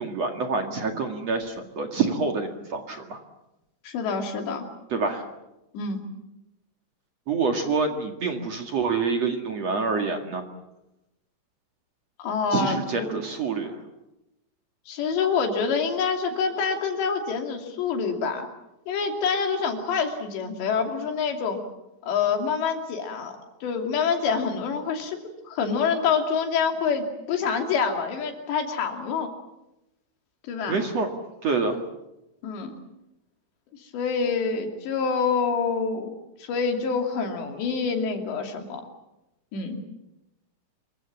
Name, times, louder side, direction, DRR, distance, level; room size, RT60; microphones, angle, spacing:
voice 1, 0.0-3.2 4.9-5.3 7.3-10.4 12.5-13.8 30.7-31.1 31.4-31.8, right 4 dB, 45° right, 4 dB, 2.6 m, -27 dB
voice 2, 3.8-4.7 5.7-6.0 12.2-13.2 14.9-18.5 18.9-21.6 22.0-23.3 23.6-25.2 25.5-29.3 30.5-30.8 32.4-32.8 33.9-38.8 39.5-39.8, left 5 dB, 80° left, 4 dB, 5.0 m, -26 dB
27.0 x 24.0 x 7.3 m, 0.92 s
omnidirectional pair, 5.0 m